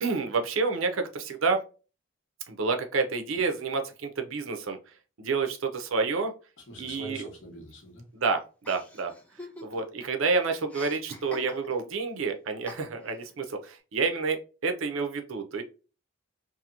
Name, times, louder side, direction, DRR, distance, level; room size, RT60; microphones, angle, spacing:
voice 1, 0.0-1.6 2.5-4.8 5.2-6.3 6.8-7.3 8.1-9.1 9.6-15.6, right 4 dB, 80° right, 6 dB, 0.6 m, -29 dB
voice 2, 6.6-8.1, equal, 65° left, 1 dB, 1.2 m, -44 dB
Chuckle chortle, 8.6-10.0 10.3-11.9 12.7-13.2, left 1 dB, 5° left, 0.5 m, -45 dB
2.8 x 2.6 x 2.5 m, 0.34 s
head